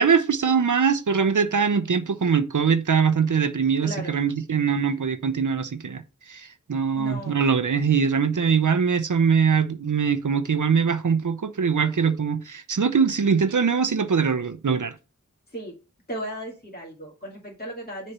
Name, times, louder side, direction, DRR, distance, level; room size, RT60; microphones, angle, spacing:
voice 1, 0.0-6.0 6.3-14.9, right 6 dB, 80° right, 0.7 m, -22 dB
voice 2, 3.8-4.1 7.0-7.4 15.5-15.7 16.1-18.1, equal, 30° left, 2.3 m, -35 dB
6.7 x 4.3 x 5.5 m
wide cardioid pair, 45°, 30 cm